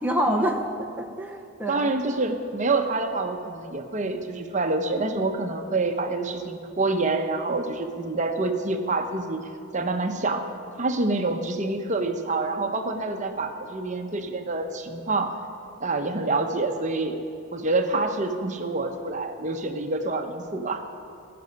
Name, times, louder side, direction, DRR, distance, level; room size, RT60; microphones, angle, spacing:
voice 1, 0.0-2.0 2.3-2.4, equal, 10° right, 1 dB, 0.8 m, -27 dB
voice 2, 1.7-10.4 10.8-15.4 15.8-17.2 17.5-20.9, right 3 dB, 40° right, 5 dB, 0.9 m, -27 dB
16.5 x 6.9 x 9.5 m, 2.4 s
head